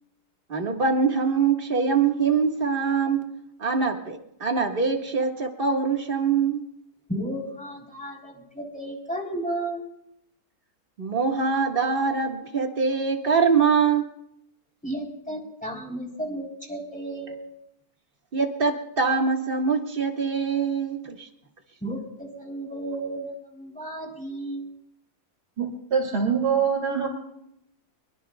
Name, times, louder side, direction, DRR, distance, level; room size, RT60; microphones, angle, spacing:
voice 1, 0.5-3.3 3.6-6.6 11.0-14.2 18.3-21.3, right 5 dB, 35° right, 2 dB, 1.8 m, -23 dB
voice 2, 7.1-9.9 14.8-17.4 21.8-24.7, right 1 dB, 5° left, 0 dB, 3.8 m, -33 dB
voice 3, 25.6-27.1, right 6 dB, 70° right, -3 dB, 3.5 m, -24 dB
24.5 x 22.0 x 2.4 m, 0.78 s
omnidirectional pair, 1.7 m